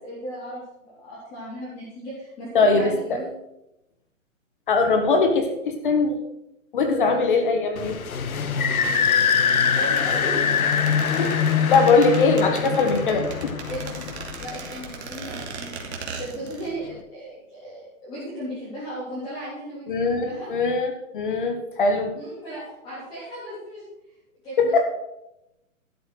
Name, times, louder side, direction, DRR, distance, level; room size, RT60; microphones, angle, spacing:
voice 1, 0.0-3.3 7.0-7.2 9.7-10.8 13.1-13.3 13.6-15.9 16.2-20.5 22.1-23.8 24.4-24.8, right 1 dB, 10° left, -10 dB, 3.6 m, -36 dB
voice 2, 2.5-3.2 4.7-6.2 6.7-8.0 11.2-11.3 11.7-13.2 19.9-22.1 24.6-24.8, left 3 dB, 40° left, 6 dB, 1.7 m, -21 dB
sound 1, 7.8-15.1, left 6 dB, 90° left, 1.5 m, -23 dB
sound 2, 9.6-16.7 17.0-17.1, right 5 dB, 50° right, 2.6 m, -38 dB
12.5 x 8.3 x 6.4 m, 0.88 s
hypercardioid pair, 175°, 41 cm